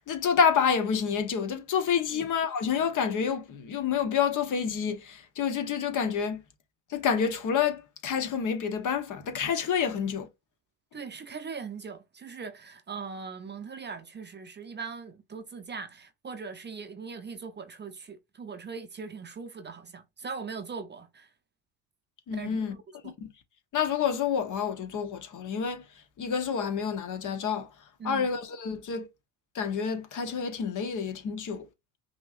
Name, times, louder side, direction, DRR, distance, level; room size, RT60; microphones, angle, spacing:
voice 1, 0.0-6.4 6.9-10.3 22.3-22.7 23.2-23.3 23.7-25.8 26.2-27.7 28.0-29.1 29.5-31.7, left 7 dB, 45° left, 1.1 m, -28 dB
voice 2, 10.9-21.3 22.3-23.1 28.0-28.3, right 5 dB, 25° right, 0.6 m, -40 dB
5.4 x 2.9 x 2.5 m
supercardioid pair, 85°, 42 cm